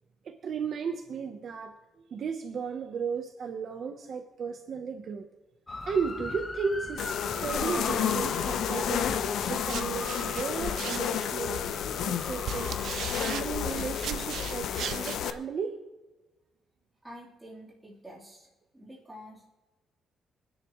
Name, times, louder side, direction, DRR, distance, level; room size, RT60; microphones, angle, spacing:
voice 1, 0.2-5.3 5.8-7.1 7.4-9.1 9.5-11.7 12.0-12.8 13.1-15.8, right 6 dB, 45° right, 5 dB, 0.9 m, -34 dB
sound 1, 5.7-13.0, left 2 dB, 15° left, 1.0 m, -39 dB
sound 2, 7.0-15.3, left 9 dB, 65° left, 0.6 m, -31 dB
sound 3, 9.4-11.4 12.1-15.2, right 10 dB, 60° right, 0.4 m, -38 dB
voice 2, 17.0-18.5 18.7-19.5, equal, 5° right, -5 dB, 3.5 m, -48 dB
27.0 x 10.5 x 3.1 m, 1.1 s
cardioid pair, 175°, 0 cm